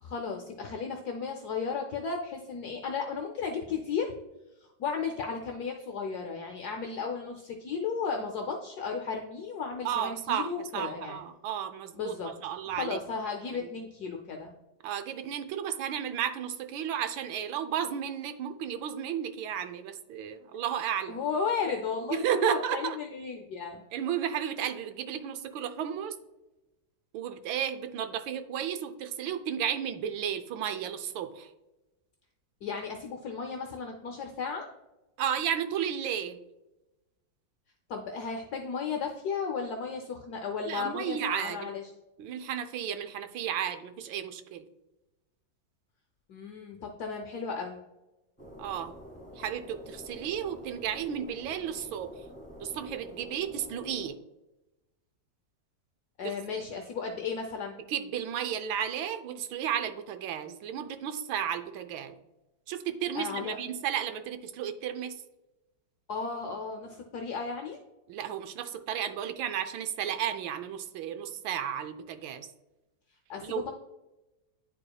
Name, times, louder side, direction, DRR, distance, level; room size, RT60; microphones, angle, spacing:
voice 1, 0.0-4.1 4.6-11.2 11.9-12.3 12.7-14.5 21.1-23.8 32.6-34.7 37.9-41.8 46.3-47.8 56.2-57.8 63.1-63.6 66.1-67.8 73.3-73.7, left 5 dB, 65° left, 3 dB, 1.1 m, -34 dB
voice 2, 9.8-12.1 12.4-13.0 13.6-13.7 14.8-21.2 22.1-23.0 23.9-26.1 27.1-31.5 35.2-36.4 40.7-41.7 42.2-44.6 48.6-48.9 49.3-52.1 52.6-54.2 56.2-56.6 57.9-62.1 62.7-65.2 68.1-72.5 73.4-73.6, right 9 dB, 90° right, 9 dB, 1.4 m, -33 dB
sound 1, 48.4-54.1, equal, 15° left, 1.7 m, -47 dB
10.5 x 4.8 x 2.3 m, 1.0 s
omnidirectional pair, 2.1 m